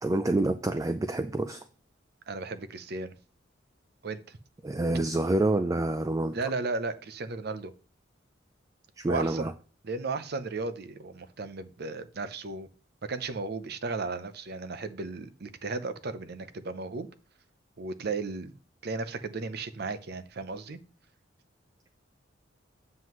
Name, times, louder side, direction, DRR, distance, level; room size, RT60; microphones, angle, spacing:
voice 1, 0.0-1.6 4.6-6.4 9.0-9.5, right 2 dB, 15° right, 0.3 m, -27 dB
voice 2, 2.3-3.1 4.0-4.4 6.3-7.7 9.1-9.5 9.8-12.7 13.0-17.1 17.8-18.5 18.8-20.8, right 3 dB, 55° right, 0.6 m, -35 dB
7.6 x 7.5 x 3.1 m
head